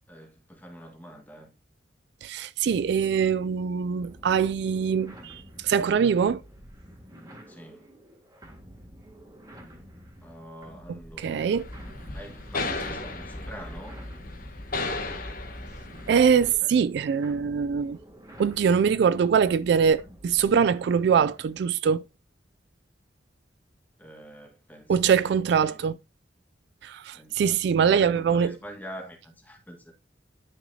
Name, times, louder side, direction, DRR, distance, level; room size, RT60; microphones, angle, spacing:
voice 1, 0.1-1.5 7.5-7.9 10.2-11.7 12.1-14.0 16.6-16.7 24.0-25.8 27.1-29.9, equal, 10° left, 1.8 m, -45 dB
voice 2, 2.2-6.4 11.2-11.7 16.1-18.0 18.4-22.0 24.9-25.9 26.8-28.5, right 7 dB, 65° right, 0.3 m, -23 dB
sound 1, 4.0-21.6, equal, 20° right, 1.8 m, -49 dB
sound 2, 11.6-16.5, left 2 dB, 50° left, 1.2 m, -35 dB
10.0 x 5.8 x 2.8 m
head